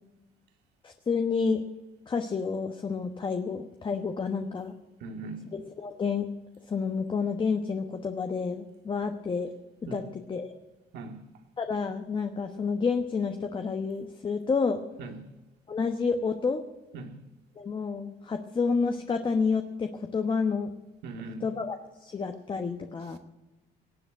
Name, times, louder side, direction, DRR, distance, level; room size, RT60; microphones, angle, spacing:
voice 1, 0.8-1.6 2.1-4.7 5.5-6.3 6.7-9.5 9.9-10.6 11.6-14.8 15.7-16.6 17.6-20.7 21.4-23.2, left 5 dB, 30° left, 1.1 m, -29 dB
voice 2, 5.0-5.5 9.9-10.0 10.9-11.2 15.0-15.2 16.9-17.2 21.0-21.5, right 3 dB, 80° right, 2.2 m, -39 dB
18.5 x 7.9 x 8.7 m
cardioid pair, 110°, 17 cm